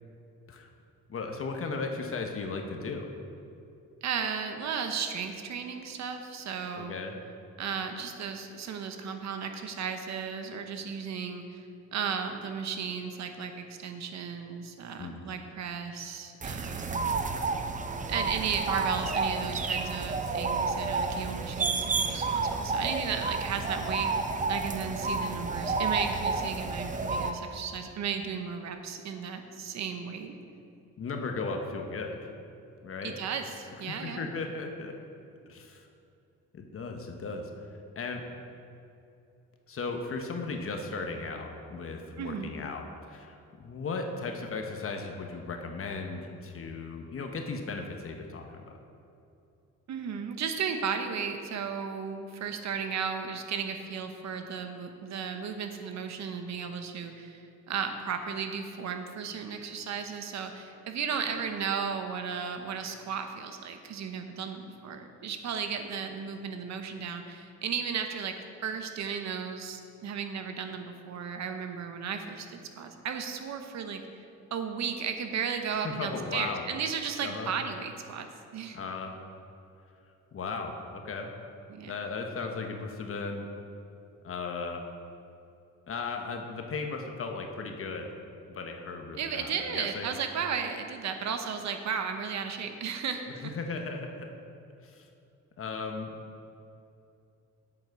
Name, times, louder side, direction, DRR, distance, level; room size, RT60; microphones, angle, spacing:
voice 1, 1.1-3.1 6.7-7.2 15.0-15.3 31.0-32.3 32.8-33.2 33.9-34.9 35.5-35.9 36.5-37.5 38.0-38.2 39.7-48.6 75.7-76.6 77.2-77.5 78.7-79.1 80.3-81.3 81.9-83.5 84.2-84.8 85.9-88.1 88.5-90.1 93.3-94.3 94.8-95.1 95.6-96.1, left 4 dB, 45° left, 3 dB, 1.0 m, -36 dB
voice 2, 4.0-7.0 7.6-11.6 11.9-17.0 18.1-30.3 33.0-34.3 42.2-42.5 49.9-68.4 68.6-74.0 74.5-78.3 78.5-78.8 81.7-81.9 89.1-93.5, right 6 dB, 65° right, 6 dB, 0.9 m, -35 dB
sound 1, 16.4-27.3, right 4 dB, 25° right, 0.6 m, -30 dB
7.8 x 7.3 x 4.6 m, 2.6 s
cardioid pair, 90°, 30 cm